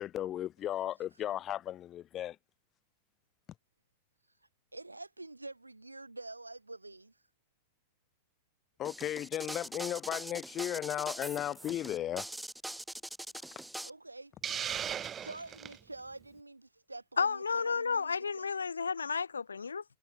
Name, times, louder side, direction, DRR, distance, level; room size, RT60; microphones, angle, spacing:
voice 1, 0.0-2.4 8.8-12.3, left 12 dB, 30° left, 7.1 m, -35 dB
voice 2, 4.7-7.1 13.8-14.4 15.1-18.5, right 2 dB, 85° right, 7.1 m, -47 dB
sound 1, 8.8-13.9, right 1 dB, 5° right, 4.9 m, -42 dB
Hiss, 14.4-15.8, right 9 dB, 25° right, 1.1 m, -37 dB
voice 3, 17.2-19.8, left 5 dB, 75° left, 1.0 m, -32 dB
figure-of-eight pair, 90°, 0 cm